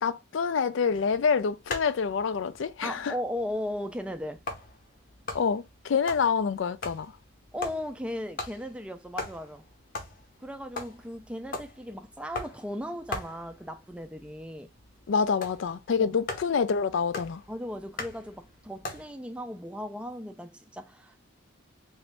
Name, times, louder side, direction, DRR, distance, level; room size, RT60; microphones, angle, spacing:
voice 1, 0.0-3.1 5.3-7.1 15.1-17.4, left 6 dB, 65° left, 0.4 m, -27 dB
sound 1, 0.9-19.1, left 3 dB, 45° left, 0.7 m, -42 dB
voice 2, 2.8-4.4 7.5-9.6 10.4-14.7 16.0-16.1 17.5-21.2, left 1 dB, 5° right, 0.4 m, -37 dB
3.0 x 2.6 x 3.3 m
head